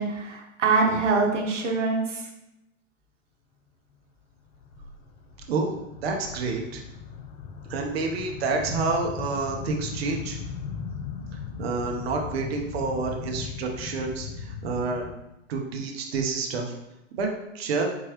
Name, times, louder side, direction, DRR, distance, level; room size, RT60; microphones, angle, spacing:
voice 1, 0.0-2.2, right 4 dB, 65° right, 0 dB, 1.1 m, -24 dB
sound 1, 4.3-15.2, left 6 dB, 40° left, 0.5 m, -38 dB
voice 2, 5.5-6.8 7.7-10.4 11.6-15.1 15.5-16.6 17.1-17.9, right 4 dB, 50° right, 2 dB, 0.8 m, -29 dB
4.6 x 3.0 x 2.9 m, 0.91 s
figure-of-eight pair, 110°, 38 cm